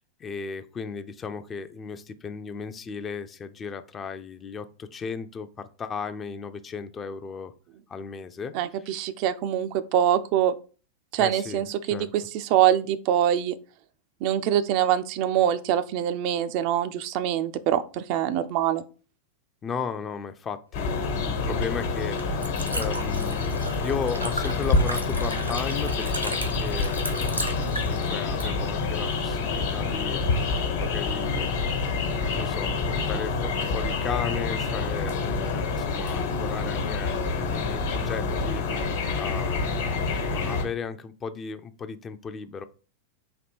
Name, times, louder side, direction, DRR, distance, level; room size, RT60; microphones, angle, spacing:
voice 1, 0.2-7.5 7.9-8.9 11.2-12.1 19.6-31.5 32.3-42.6, left 6 dB, 25° left, 10 dB, 0.4 m, -36 dB
voice 2, 8.5-10.5 11.1-13.5 14.2-18.8, right 10 dB, 45° right, 11 dB, 0.4 m, -24 dB
sound 1, 20.7-40.6, left 4 dB, 60° left, 1.2 m, -27 dB
Liquid, 20.9-29.5, right 1 dB, 90° right, 0.8 m, -37 dB
4.3 x 2.8 x 4.2 m, 0.37 s
figure-of-eight pair, 90°, 0 cm